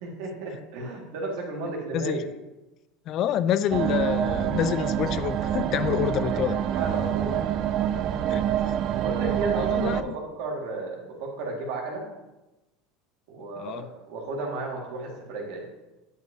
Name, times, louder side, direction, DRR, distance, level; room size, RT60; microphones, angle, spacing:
voice 1, 0.0-2.2 6.3-6.5 6.7-7.4 9.0-12.1 13.3-15.7, right 3 dB, 70° right, 0 dB, 1.8 m, -33 dB
voice 2, 3.1-6.6 8.3-8.5 9.6-10.1 13.6-13.9, left 10 dB, 50° left, 14 dB, 0.3 m, -27 dB
sound 1, 3.7-10.0, right 10 dB, 50° right, 0.3 m, -26 dB
8.9 x 5.5 x 2.7 m, 1.0 s
supercardioid pair, 115°, 0 cm